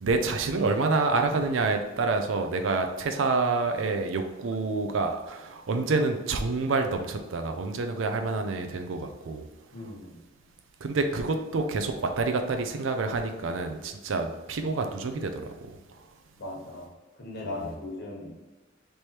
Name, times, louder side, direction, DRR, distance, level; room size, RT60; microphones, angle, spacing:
voice 1, 0.0-9.5 10.8-15.8, right 3 dB, 75° right, 5 dB, 0.5 m, -28 dB
voice 2, 9.7-10.1 16.4-16.9 17.1-18.3, left 2 dB, 60° left, -2 dB, 1.3 m, -38 dB
3.3 x 3.0 x 4.3 m, 1.2 s
head